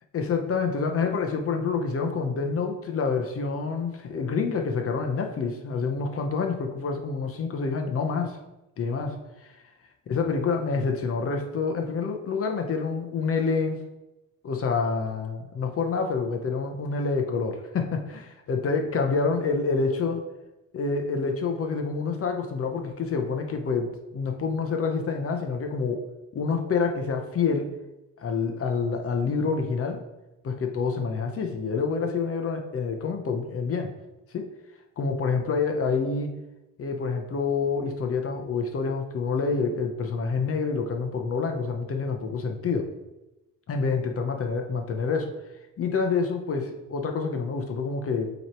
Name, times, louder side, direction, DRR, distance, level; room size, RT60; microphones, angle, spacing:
voice 1, 0.1-8.4 8.8-9.6 10.1-13.8 14.4-20.2 20.7-26.0 26.3-27.7 28.2-30.0 30.4-33.9 34.3-34.5 35.0-36.3 36.8-42.8 43.7-45.3 45.8-48.3, left 4 dB, 50° left, 4 dB, 0.8 m, -27 dB
8.0 x 3.1 x 4.4 m, 0.99 s
cardioid pair, 90°, 30 cm